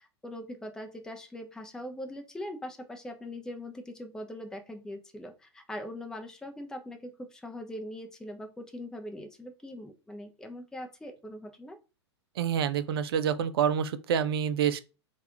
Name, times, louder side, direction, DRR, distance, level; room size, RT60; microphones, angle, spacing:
voice 1, 0.0-11.8, left 1 dB, 5° left, 0.6 m, -41 dB
voice 2, 12.4-14.8, right 8 dB, 60° right, 0.5 m, -27 dB
3.4 x 2.4 x 4.4 m
figure-of-eight pair, 100°, 14 cm